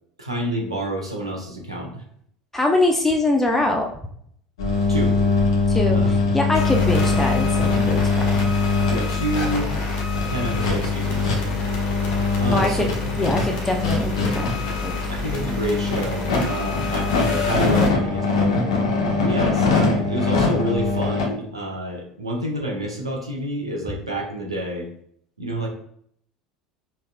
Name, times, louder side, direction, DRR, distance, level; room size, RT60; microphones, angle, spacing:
voice 1, 0.2-2.0 4.9-5.2 5.9-6.1 8.9-9.7 10.2-11.4 12.4-13.5 15.1-18.7 19.2-24.9 25.4-25.7, right 1 dB, 90° right, 0 dB, 0.8 m, -28 dB
voice 2, 2.5-3.9 5.7-8.5 12.5-12.9 13.2-14.5 14.8-15.0, left 2 dB, 10° left, 2 dB, 0.6 m, -23 dB
sound 1, 4.6-21.3, left 3 dB, 70° left, 1.0 m, -22 dB
sound 2, 6.5-17.9, left 4 dB, 55° left, 1.4 m, -29 dB
5.4 x 3.3 x 2.2 m, 0.65 s
figure-of-eight pair, 70°, 3 cm